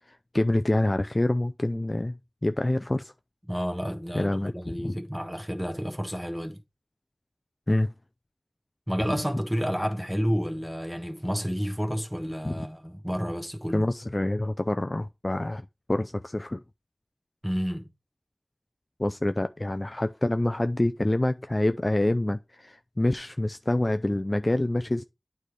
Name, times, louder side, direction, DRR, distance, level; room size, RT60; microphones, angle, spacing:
voice 1, 0.3-3.1 4.1-5.0 7.7-7.9 12.4-12.5 13.7-15.6 15.9-16.6 19.0-25.0, left 1 dB, 35° left, 0.4 m, -26 dB
voice 2, 3.5-6.6 8.9-13.9 17.4-17.9, equal, 5° right, 1.2 m, -30 dB
9.0 x 3.3 x 4.7 m
wide cardioid pair, 55°, 0 cm